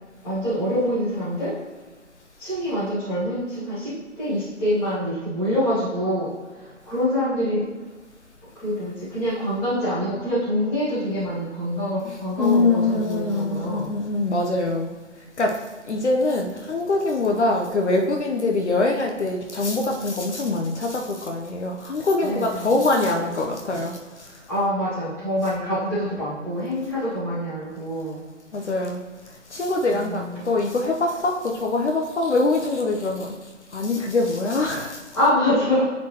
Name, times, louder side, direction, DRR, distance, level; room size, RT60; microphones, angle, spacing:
voice 1, 0.2-1.5 2.4-7.7 8.6-13.9 22.2-22.8 24.5-28.2 29.9-30.5 35.1-35.8, equal, 5° left, -14 dB, 1.7 m, -25 dB
voice 2, 12.0-14.9 15.4-24.3 28.5-29.0 29.5-33.3 33.7-35.0, left 2 dB, 60° left, 2 dB, 0.9 m, -24 dB
9.7 x 4.3 x 3.0 m, 1.3 s
figure-of-eight pair, 165°, 39 cm